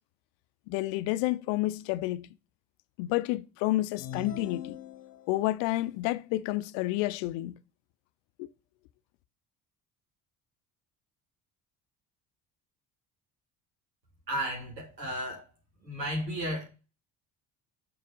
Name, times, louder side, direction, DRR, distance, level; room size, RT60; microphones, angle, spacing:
voice 1, 0.7-2.3 3.0-4.8 5.3-7.6 8.4-8.5, left 17 dB, 60° left, 0.6 m, -30 dB
sound 1, 4.0-5.5, left 7 dB, 40° left, 1.1 m, -41 dB
voice 2, 14.3-15.4 15.8-16.6, equal, 90° right, 2.4 m, -33 dB
6.5 x 3.9 x 5.2 m
hypercardioid pair, 55°, 49 cm